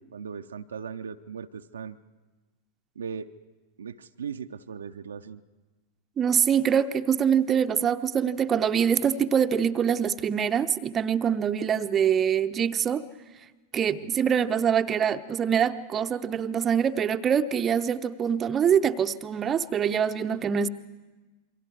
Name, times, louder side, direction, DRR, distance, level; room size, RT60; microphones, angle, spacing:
voice 1, 0.0-2.0 3.0-3.3 3.8-5.4 14.0-14.2, right 6 dB, 70° right, 0.6 m, -38 dB
voice 2, 6.2-13.0 13.7-20.7, right 8 dB, 25° right, 0.7 m, -24 dB
28.0 x 23.5 x 4.7 m
figure-of-eight pair, 90°, 0 cm